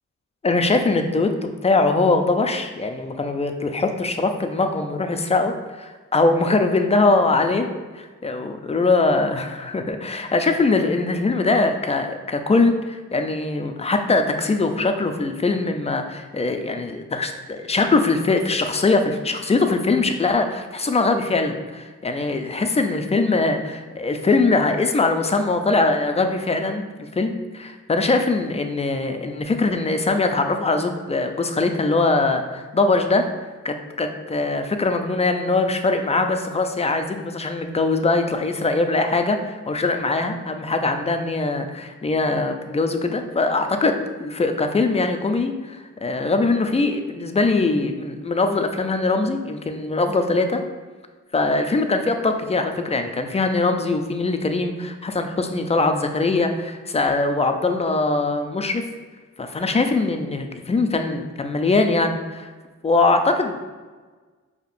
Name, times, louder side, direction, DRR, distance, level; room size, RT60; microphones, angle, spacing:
voice 1, 0.4-1.3 1.6-7.7 7.9-33.3 33.6-50.6 51.3-58.8 59.4-62.5 62.8-63.6, left 3 dB, 20° left, 6 dB, 0.3 m, -22 dB
5.0 x 2.8 x 2.5 m, 1.4 s
cardioid pair, 90°, 30 cm